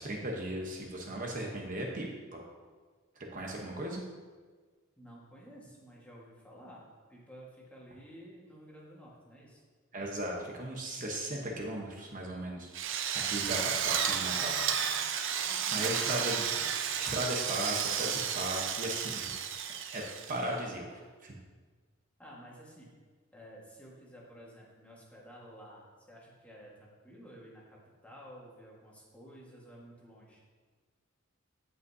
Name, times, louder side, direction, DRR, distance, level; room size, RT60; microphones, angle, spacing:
voice 1, 0.0-2.4 3.2-4.0 9.9-12.7 13.3-14.6 15.1-15.4 15.7-16.5 17.0-19.4 19.7-20.0 20.3-21.3, right 1 dB, 40° right, -1 dB, 1.0 m, -37 dB
voice 2, 5.0-9.6 15.3-16.2 22.2-22.9 23.3-30.4, equal, 5° left, -4 dB, 1.6 m, -52 dB
Drill, 12.7-20.6, right 8 dB, 60° right, 0.6 m, -32 dB
16.0 x 5.4 x 2.8 m, 1.5 s
head